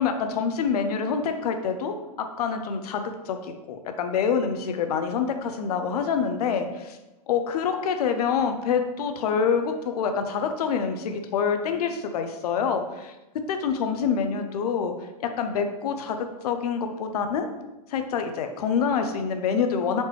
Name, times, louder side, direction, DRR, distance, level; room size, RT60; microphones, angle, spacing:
voice 1, 0.0-7.0 7.3-13.1 13.5-14.9 15.2-17.5 17.9-20.0, left 6 dB, 65° left, 7 dB, 0.6 m, -26 dB
4.2 x 3.0 x 3.3 m, 1.0 s
hypercardioid pair, 145°, 21 cm